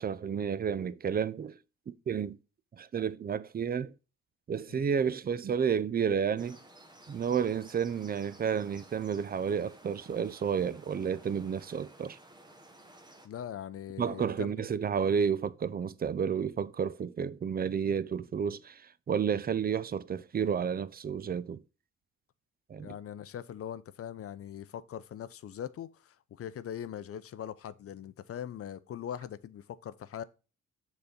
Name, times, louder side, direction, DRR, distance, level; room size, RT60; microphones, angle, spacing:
voice 1, 0.0-1.6 1.9-2.4 2.7-3.9 4.5-6.6 7.1-12.2 14.0-21.6 22.7-22.9, right 7 dB, 30° right, 0.5 m, -31 dB
sound 1, 6.4-13.3, right 1 dB, 15° right, 1.3 m, -55 dB
voice 2, 13.2-14.5 22.8-30.2, left 9 dB, 50° left, 0.6 m, -41 dB
6.8 x 4.1 x 5.0 m
cardioid pair, 90°, 30 cm